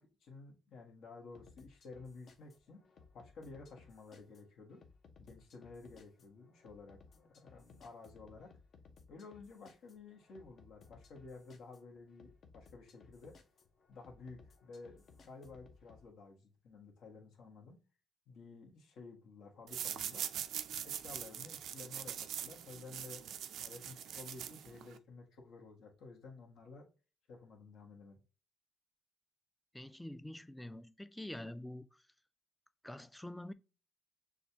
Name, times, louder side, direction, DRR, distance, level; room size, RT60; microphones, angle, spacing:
voice 1, 0.0-2.8 3.1-4.8 5.2-8.5 9.1-13.3 13.9-17.8 18.3-20.3 20.8-23.2 23.6-26.9 27.3-28.2, left 4 dB, 75° left, 1.3 m, -53 dB
sound 1, 1.3-16.0, left 4 dB, 60° left, 0.8 m, -62 dB
sound 2, 19.7-25.0, right 10 dB, 75° right, 0.4 m, -42 dB
voice 2, 29.7-32.0 32.8-33.5, left 1 dB, 5° left, 0.4 m, -46 dB
6.4 x 2.4 x 2.8 m
cardioid pair, 90°, 0 cm